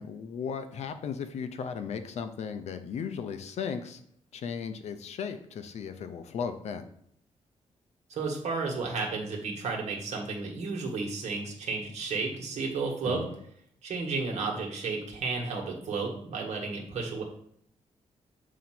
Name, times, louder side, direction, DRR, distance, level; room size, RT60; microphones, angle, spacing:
voice 1, 0.0-4.0 4.3-6.8 13.0-13.4, left 6 dB, 70° left, 8 dB, 0.7 m, -36 dB
voice 2, 8.1-13.2 13.8-17.2, right 4 dB, 75° right, 0 dB, 1.6 m, -32 dB
7.2 x 2.8 x 5.9 m, 0.68 s
wide cardioid pair, 155°, 12 cm